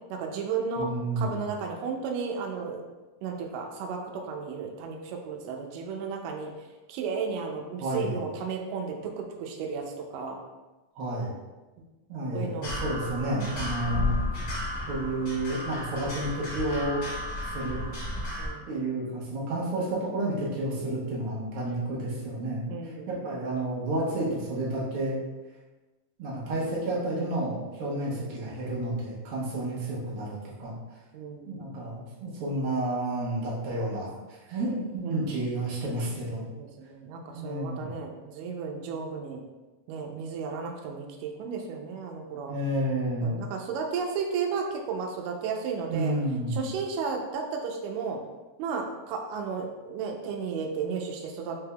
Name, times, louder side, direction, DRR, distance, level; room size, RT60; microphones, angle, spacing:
voice 1, 0.1-0.9 1.2-2.8 3.2-6.5 6.9-10.4 12.3-12.8 18.4-18.8 22.7-23.3 28.1-28.4 31.1-31.7 35.0-35.5 36.6-39.4 39.9-42.5 43.2-46.1 46.5-48.2 48.6-51.6, right 5 dB, 90° right, 2 dB, 2.2 m, -34 dB
voice 2, 0.8-1.4 7.8-8.2 11.0-11.3 12.1-14.2 14.9-17.0 17.5-17.8 18.7-22.9 23.2-25.2 26.2-30.7 31.4-34.1 34.5-36.5 37.3-37.9 42.5-43.4 45.9-46.6, right 1 dB, 60° right, -6 dB, 1.5 m, -30 dB
sound 1, 12.6-18.5, left 1 dB, 90° left, 0.7 m, -33 dB
5.3 x 3.4 x 2.2 m, 1.2 s
omnidirectional pair, 3.7 m